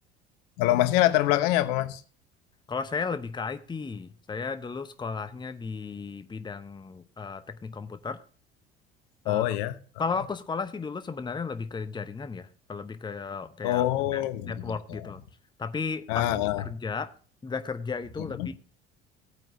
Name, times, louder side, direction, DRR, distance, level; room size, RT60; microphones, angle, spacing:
voice 1, 0.6-2.0 9.2-9.7 13.6-15.0 16.1-16.6 18.4-18.5, left 14 dB, 60° left, 1.0 m, -25 dB
voice 2, 2.7-8.2 9.2-9.6 10.0-13.8 14.1-15.2 15.6-17.1 17.4-18.5, left 5 dB, 15° left, 0.9 m, -34 dB
17.0 x 8.9 x 2.7 m
figure-of-eight pair, 60°, 30 cm